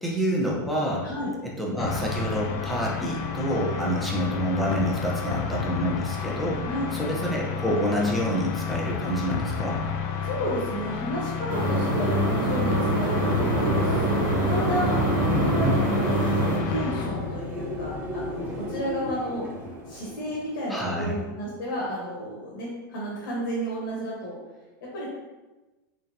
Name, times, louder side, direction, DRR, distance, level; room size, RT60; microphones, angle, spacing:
voice 1, 0.0-1.1 1.6-6.6 6.9-9.8 15.3-15.8 20.7-21.1, equal, ahead, -4 dB, 0.8 m, -27 dB
voice 2, 1.0-1.3 3.8-3.9 6.6-6.9 10.2-15.0 15.4-16.2 16.7-19.4 19.9-24.4 24.8-25.1, equal, 75° left, -6 dB, 1.2 m, -32 dB
sound 1, 1.8-17.4, left 6 dB, 50° left, 0.4 m, -31 dB
sound 2, 11.5-16.6, right 2 dB, 80° right, 1.1 m, -25 dB
sound 3, 12.0-21.0, left 1 dB, 15° right, 1.1 m, -34 dB
3.7 x 3.1 x 2.8 m, 1.1 s
supercardioid pair, 125°, 11 cm